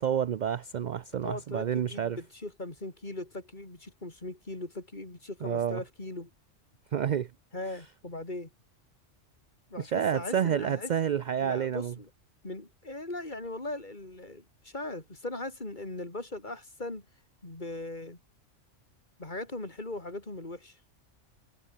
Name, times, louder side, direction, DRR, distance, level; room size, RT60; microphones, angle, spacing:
voice 1, 0.0-2.2 5.4-5.8 6.9-7.3 9.8-11.9, right 9 dB, 60° right, 0.5 m, -29 dB
voice 2, 1.2-6.3 7.5-8.5 9.7-10.9 11.4-12.1 12.4-17.1 17.4-18.2 19.2-20.8, left 2 dB, 40° left, 3.6 m, -39 dB
omnidirectional pair, 1.3 m